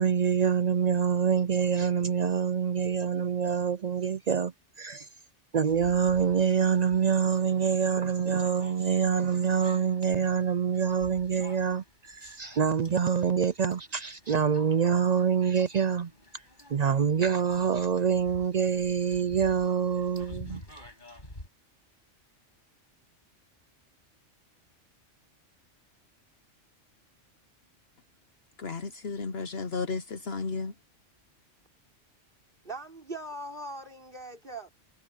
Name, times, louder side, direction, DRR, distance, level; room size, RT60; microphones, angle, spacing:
voice 1, 0.0-5.1 5.5-16.1 16.7-20.6, right 7 dB, 60° right, 0.4 m, -26 dB
sound 1, 5.7-21.5, left 1 dB, 40° left, 7.6 m, -51 dB
voice 2, 28.6-30.7, left 4 dB, 60° left, 1.1 m, -33 dB
voice 3, 32.6-34.7, right 2 dB, 45° right, 5.1 m, -40 dB
omnidirectional pair, 1.2 m